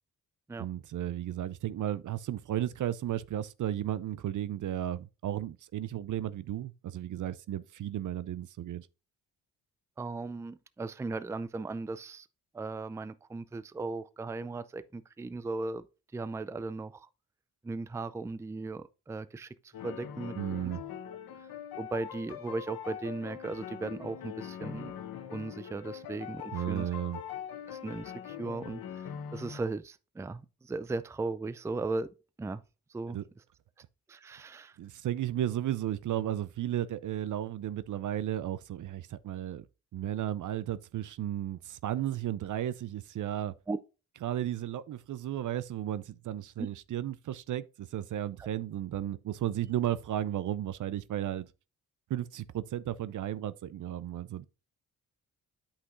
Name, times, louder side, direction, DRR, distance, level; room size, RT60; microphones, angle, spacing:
voice 1, 0.6-8.9 20.4-20.8 26.5-27.2 33.1-33.3 34.8-39.7 39.9-43.5 44.2-51.5 52.1-54.5, right 12 dB, 60° right, 0.5 m, -34 dB
voice 2, 10.0-12.3 12.5-15.8 16.1-17.1 17.6-20.4 21.8-24.9 25.3-26.9 27.7-32.1 32.4-32.6 32.9-33.2 34.1-34.8 43.7-43.8 46.6-46.7, right 3 dB, 10° right, 0.4 m, -37 dB
sound 1, 19.7-29.6, left 9 dB, 75° left, 1.0 m, -42 dB
8.3 x 5.7 x 2.6 m
cardioid pair, 65°, 36 cm